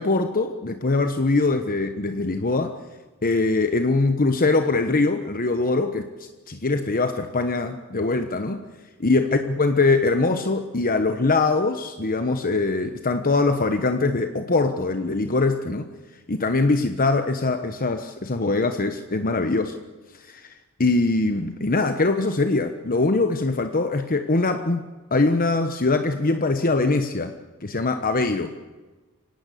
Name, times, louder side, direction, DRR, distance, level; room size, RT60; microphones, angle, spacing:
voice 1, 0.0-2.7 3.2-6.1 6.5-8.6 9.0-15.9 16.3-19.8 20.3-20.4 20.8-24.8 25.1-27.3 27.6-28.5, left 3 dB, 40° left, 8 dB, 1.2 m, -22 dB
25.0 x 18.0 x 8.5 m, 1.2 s
head